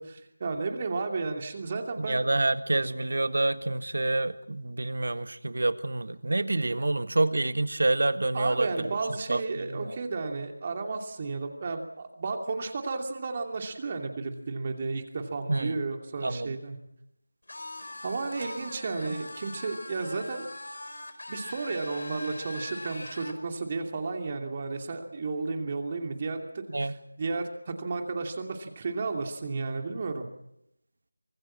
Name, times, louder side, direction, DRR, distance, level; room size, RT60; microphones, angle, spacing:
voice 1, 0.0-2.2 6.8-6.9 8.3-16.8 18.0-20.5 21.3-30.3, right 3 dB, 30° right, 4 dB, 2.7 m, -33 dB
voice 2, 2.0-8.7 9.3-9.9 15.5-15.8 16.2-16.6 19.1-19.2 26.7-26.9, right 2 dB, 65° right, 11 dB, 1.6 m, -27 dB
sound 1, 17.5-23.4, left 2 dB, 70° left, 4.8 m, -41 dB
25.0 x 19.0 x 7.5 m, 0.82 s
figure-of-eight pair, 170°, 0 cm